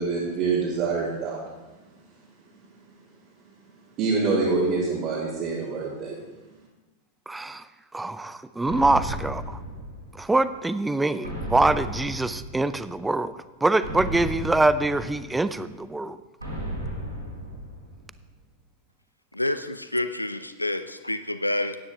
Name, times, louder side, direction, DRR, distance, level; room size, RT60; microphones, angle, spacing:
voice 1, 0.0-1.4 4.0-6.2, right 4 dB, 40° right, -7 dB, 2.3 m, -25 dB
voice 2, 7.3-7.6 7.9-9.6 10.1-13.3 13.6-16.2, right 2 dB, 10° right, 13 dB, 0.5 m, -24 dB
sound 1, 8.7-10.4 11.2-13.0 13.8-15.6 16.4-18.2, equal, 85° right, 4.1 m, -34 dB
voice 3, 19.3-21.8, left 1 dB, 85° left, 11 dB, 0.4 m, -28 dB
15.5 x 9.7 x 3.5 m, 1.2 s
figure-of-eight pair, 90°, 0 cm